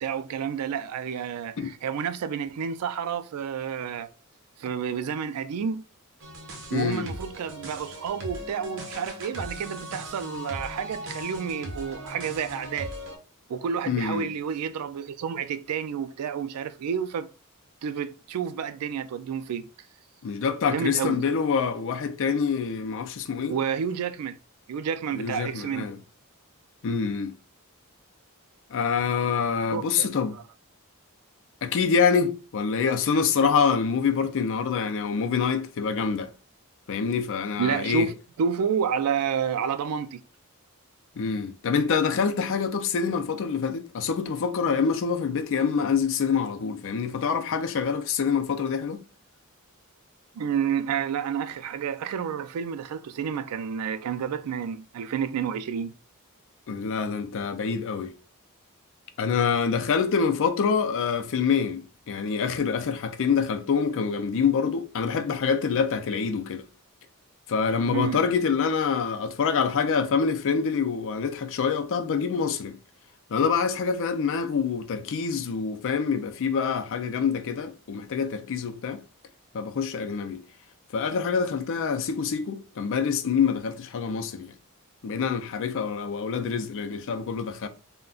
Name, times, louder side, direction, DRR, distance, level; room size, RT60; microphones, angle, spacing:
voice 1, 0.0-4.1 4.6-5.8 6.7-12.9 13.5-17.3 17.8-19.7 20.7-21.2 23.5-24.4 24.7-25.9 29.7-30.4 37.6-38.1 38.4-40.2 50.3-55.9 67.8-68.2, right 7 dB, 85° right, 0.3 m, -30 dB
sound 1, 6.2-13.2, equal, 60° right, 0.7 m, -39 dB
voice 2, 6.7-7.1 13.9-14.3 20.2-23.5 25.1-26.0 26.8-27.3 28.7-30.4 31.6-36.3 36.9-38.1 41.2-49.0 56.7-58.1 59.2-66.6 67.5-72.8 73.3-79.0 79.5-80.4 80.9-84.5 85.0-87.7, left 6 dB, 60° left, 0.4 m, -26 dB
2.3 x 2.2 x 3.7 m
head